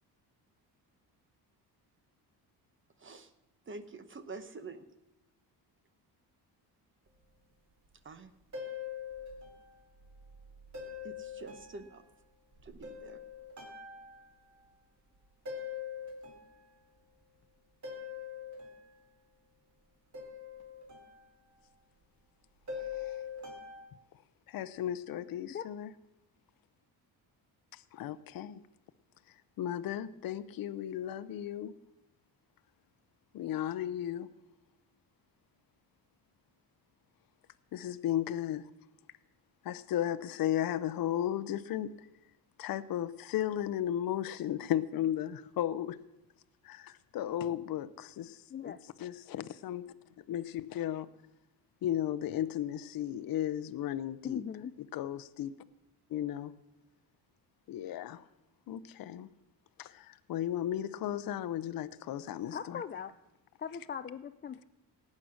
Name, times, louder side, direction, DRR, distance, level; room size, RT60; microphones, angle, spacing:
voice 1, 3.0-3.3 3.7-4.9 8.0-8.3 11.0-12.0 12.6-13.2, right 3 dB, 30° right, 1.0 m, -47 dB
sound 1, 8.5-9.7 10.0-12.0 12.5-14.6 15.5-16.7 17.8-18.7 20.1-21.2 22.7-23.8, left 7 dB, 45° right, 3.6 m, -43 dB
voice 2, 24.5-25.9 27.9-28.6 29.6-31.7 33.3-34.3 37.7-38.7 39.6-41.9 42.6-46.0 46.6-48.4 48.6-48.7 49.0-49.8 50.3-51.1 51.8-54.4 54.9-55.6 56.1-56.5 57.7-58.2 58.7-59.3 59.8-62.8, left 11 dB, 60° left, 0.7 m, -35 dB
voice 3, 54.2-54.7 62.5-63.1 63.6-64.6, left 7 dB, 25° left, 0.4 m, -39 dB
17.5 x 8.6 x 6.3 m
cardioid pair, 130°, 39 cm